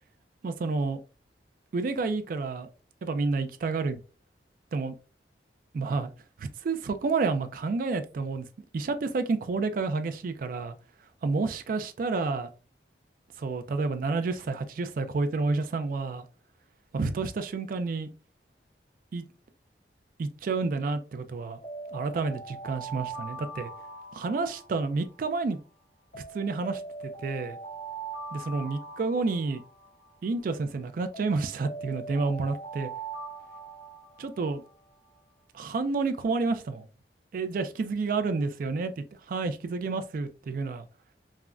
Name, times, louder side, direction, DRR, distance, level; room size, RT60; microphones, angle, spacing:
voice 1, 0.4-1.0 1.7-2.7 3.0-4.0 4.7-4.9 5.7-6.1 6.4-8.4 8.7-10.7 11.2-12.5 13.4-16.3 16.9-18.1 19.1-19.2 20.2-21.6 21.9-23.7 24.1-25.6 26.1-26.8 27.2-27.6 28.3-29.6 30.2-32.9 34.2-34.6 35.5-36.9 37.3-40.8, right 4 dB, 50° right, 0.3 m, -30 dB
Alarm, 21.4-25.6 26.1-30.6 31.1-34.9, right 3 dB, 55° left, 1.3 m, -42 dB
3.6 x 2.1 x 2.2 m
head